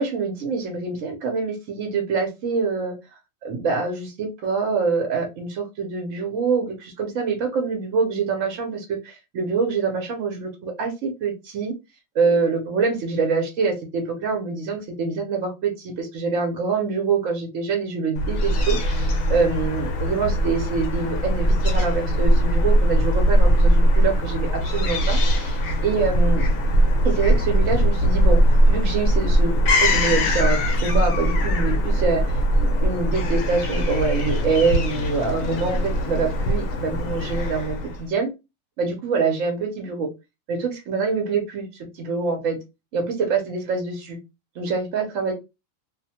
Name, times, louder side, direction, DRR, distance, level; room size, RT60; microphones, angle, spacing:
voice 1, 0.0-2.9 3.4-11.7 12.1-26.5 27.0-28.4 28.7-32.4 32.8-38.3 38.8-40.1 40.5-42.6 42.9-44.2 44.6-45.3, right 4 dB, 75° right, 3 dB, 1.1 m, -25 dB
Fowl / Gull seagull, 18.2-38.0, equal, 90° left, 1.1 m, -20 dB
2.7 x 2.1 x 2.7 m, 0.24 s
omnidirectional pair, 1.4 m